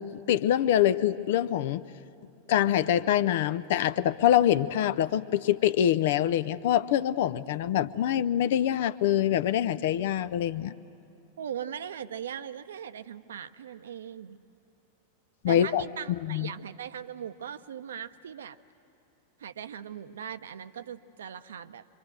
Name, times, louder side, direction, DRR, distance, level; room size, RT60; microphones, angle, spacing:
voice 1, 0.0-1.8 2.5-10.7 15.4-16.5, left 11 dB, 55° left, 16 dB, 0.6 m, -25 dB
voice 2, 11.4-14.4 15.4-18.6 19.4-21.8, right 8 dB, 65° right, 13 dB, 0.7 m, -39 dB
25.0 x 25.0 x 8.0 m, 2.7 s
figure-of-eight pair, 90°, 0 cm